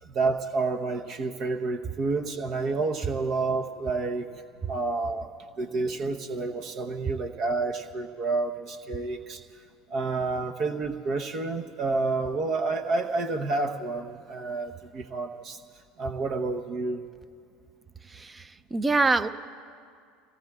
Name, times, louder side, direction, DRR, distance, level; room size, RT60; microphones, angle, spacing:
voice 1, 0.0-4.4 4.7-5.3 5.6-9.4 9.9-15.6 16.0-17.0, right 3 dB, 50° right, 6 dB, 0.9 m, -29 dB
voice 2, 18.1-19.3, right 3 dB, 20° right, 12 dB, 0.6 m, -25 dB
29.5 x 18.0 x 2.4 m, 2.2 s
hypercardioid pair, 80°, 0 cm